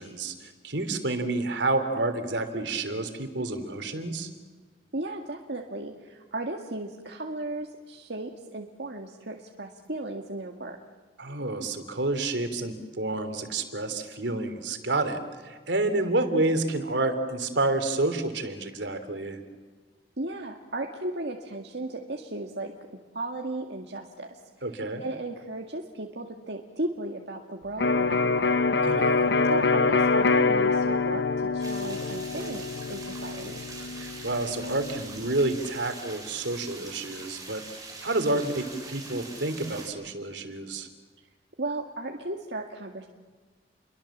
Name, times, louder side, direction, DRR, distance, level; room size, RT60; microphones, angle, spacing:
voice 1, 0.0-4.3 11.2-19.4 24.6-25.0 28.8-29.3 34.0-37.6 38.0-40.9, right 2 dB, 85° right, 8 dB, 3.2 m, -29 dB
voice 2, 4.9-10.8 20.2-22.7 23.1-24.4 24.7-28.6 29.5-33.6 41.6-43.1, right 2 dB, 70° right, 1 dB, 2.0 m, -35 dB
Electric guitar, 27.8-35.6, left 4 dB, 70° left, 0.8 m, -25 dB
sound 1, 31.6-39.9, right 3 dB, 20° right, 7.1 m, -43 dB
30.0 x 23.5 x 7.4 m, 1.5 s
head